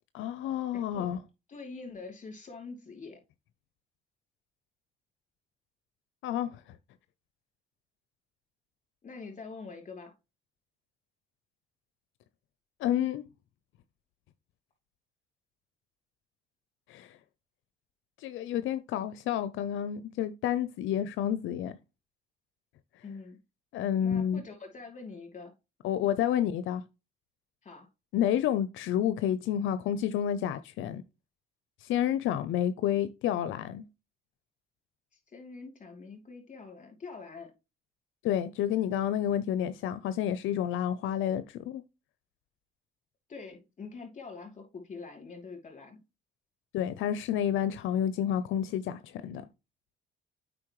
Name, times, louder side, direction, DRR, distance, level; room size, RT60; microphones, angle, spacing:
voice 1, 0.1-1.2 6.2-6.6 12.8-13.2 16.9-17.2 18.2-21.8 23.7-24.4 25.8-26.8 28.1-31.0 31.8-33.9 38.2-41.8 46.7-49.4, left 10 dB, 85° left, 0.5 m, -30 dB
voice 2, 0.7-1.2 1.5-3.2 9.0-10.1 23.0-23.4 24.0-25.5 27.6-27.9 35.1-37.5 43.3-46.0, left 4 dB, 35° left, 2.9 m, -45 dB
8.5 x 5.1 x 3.0 m
cardioid pair, 90°, 20 cm